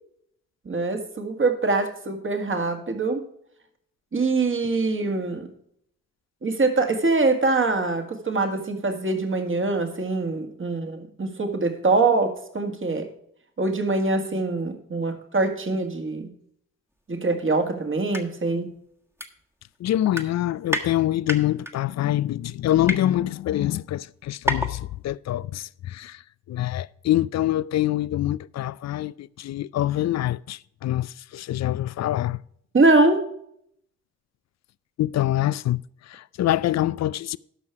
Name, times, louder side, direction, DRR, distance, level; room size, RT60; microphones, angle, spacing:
voice 1, 0.7-3.2 4.1-5.5 6.4-13.1 13.6-16.3 17.1-18.7 32.7-33.2, right 3 dB, 35° right, 2.0 m, -23 dB
sound 1, 18.0-18.2 18.6-18.7 19.2-19.8 20.1-20.9 21.3-21.7 22.4-23.0 23.7-23.8 24.0-24.1 24.4-24.8 25.1-25.2, left 1 dB, 5° right, 1.5 m, -28 dB
voice 2, 19.8-26.2 26.5-32.4 35.0-35.8 36.1-37.4, left 13 dB, 50° left, 0.4 m, -25 dB
12.5 x 5.6 x 4.7 m
supercardioid pair, 50°, 35 cm